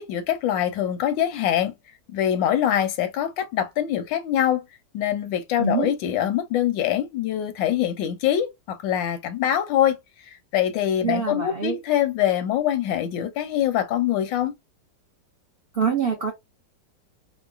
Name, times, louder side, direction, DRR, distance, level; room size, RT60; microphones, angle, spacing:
voice 1, 0.0-1.7 2.1-4.6 4.9-10.0 10.3-14.5, left 11 dB, 85° left, 1.3 m, -24 dB
voice 2, 5.6-5.9 11.0-11.8 15.7-16.3, right 6 dB, 70° right, 0.5 m, -25 dB
3.7 x 2.0 x 2.3 m
omnidirectional pair, 2.0 m